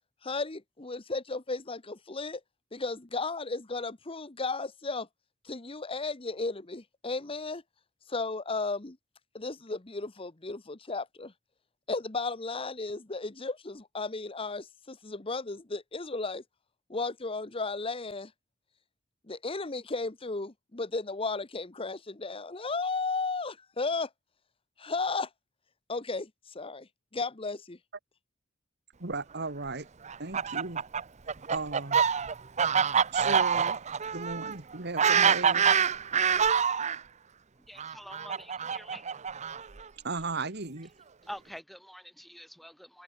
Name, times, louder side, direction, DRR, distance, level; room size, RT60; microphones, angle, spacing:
voice 1, 0.2-2.4 2.7-5.1 5.4-7.6 8.1-9.0 9.3-11.3 11.9-16.4 16.9-18.3 19.3-24.1 24.8-25.3 25.9-26.3 26.5-26.9 27.1-27.8, left 3 dB, 25° left, 1.1 m, -34 dB
voice 2, 29.0-29.9 30.2-30.8 31.5-32.0 33.1-33.8 34.1-35.7 40.0-40.9, right 3 dB, 55° right, 1.9 m, -36 dB
Fowl, 30.1-37.0 37.8-39.8, right 7 dB, 35° right, 0.7 m, -26 dB
voice 3, 37.7-39.0 41.3-43.0, equal, ahead, 4.2 m, -46 dB
open air
head